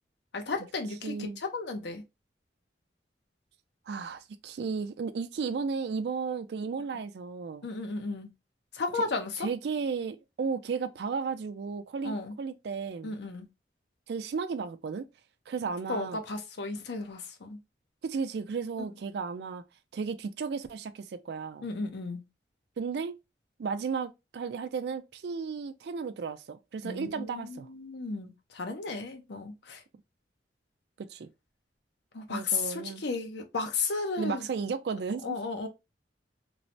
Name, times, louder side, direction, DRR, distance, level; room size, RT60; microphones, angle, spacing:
voice 1, 0.3-2.0 7.6-8.3 8.7-9.5 12.0-12.3 13.0-13.5 15.9-17.6 21.6-22.2 26.8-29.8 32.1-34.5 35.2-35.7, left 3 dB, 70° left, 0.6 m, -34 dB
voice 2, 1.0-1.4 3.9-7.7 8.9-9.1 9.4-13.1 14.1-15.1 15.5-16.2 18.0-19.6 19.9-21.7 22.8-23.2 23.6-27.7 31.0-31.3 32.3-33.0 34.2-35.4, right 5 dB, 65° right, 0.3 m, -34 dB
3.1 x 2.1 x 2.5 m
head